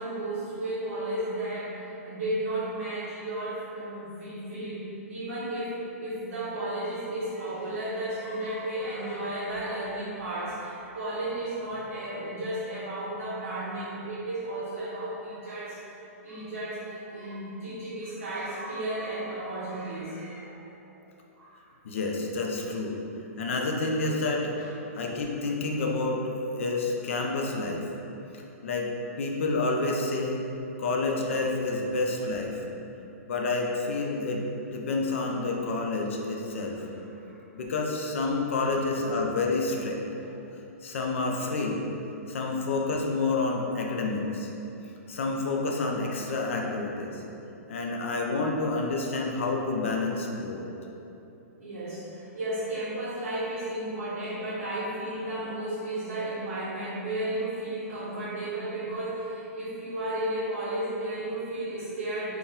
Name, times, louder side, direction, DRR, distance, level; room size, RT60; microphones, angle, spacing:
voice 1, 0.0-20.6 20.8-20.9 21.4-21.6 24.6-24.7 36.5-36.7 37.1-37.4 38.6-38.8 51.6-62.4, right 1 dB, 55° right, -11 dB, 1.0 m, -34 dB
voice 2, 21.8-23.0 23.4-24.5 24.9-27.9 28.3-28.9 29.2-30.4 30.8-32.6 33.3-36.9 37.5-40.0 40.8-41.8 42.3-44.5 45.1-47.2 47.7-50.6, left 3 dB, 55° left, 0 dB, 0.5 m, -29 dB
4.1 x 2.3 x 3.7 m, 2.9 s
hypercardioid pair, 180°, 8 cm